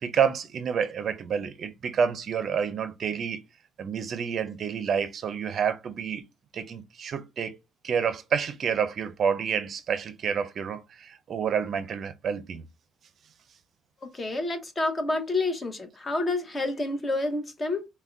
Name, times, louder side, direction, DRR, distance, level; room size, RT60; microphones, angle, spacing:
voice 1, 0.0-3.4 3.8-6.2 6.5-7.6 7.8-12.6, right 7 dB, 50° right, 0.5 m, -29 dB
voice 2, 14.1-17.9, left 2 dB, 25° left, 1.0 m, -28 dB
5.6 x 2.2 x 2.5 m
cardioid pair, 110°, 0 cm